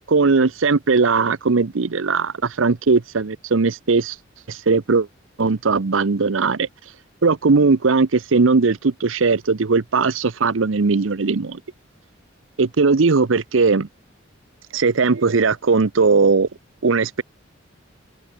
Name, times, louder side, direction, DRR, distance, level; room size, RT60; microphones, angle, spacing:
voice 1, 0.1-4.2 4.5-5.1 5.4-6.7 7.2-11.6 12.6-13.9 14.7-16.5 16.8-17.2, right 4 dB, 85° right, 0.8 m, -18 dB
open air
head